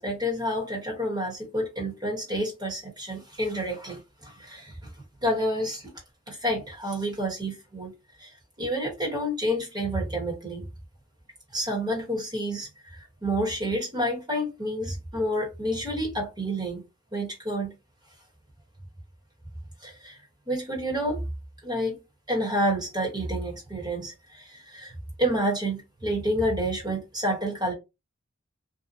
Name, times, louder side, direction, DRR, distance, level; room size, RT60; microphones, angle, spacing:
voice 1, 0.0-4.9 5.2-5.9 6.3-7.9 8.2-10.7 11.5-16.8 17.1-17.7 19.8-20.2 20.5-21.2 21.6-22.0 22.3-27.7, equal, 20° right, 1.1 m, -29 dB
2.7 x 2.1 x 2.6 m
head